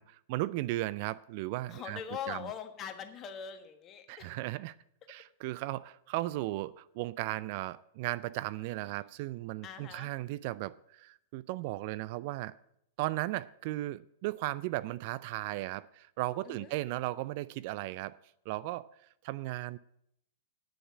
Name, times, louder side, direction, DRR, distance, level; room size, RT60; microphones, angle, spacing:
voice 1, 0.0-2.0 2.3-2.5 4.1-4.8 5.1-12.6 13.0-18.2 18.5-18.9 19.2-19.8, right 17 dB, 50° right, 0.4 m, -36 dB
voice 2, 1.7-4.4 8.8-9.0 9.6-10.1 16.4-16.8, left 8 dB, 30° left, 1.4 m, -42 dB
9.3 x 6.9 x 8.5 m
figure-of-eight pair, 100°, 0 cm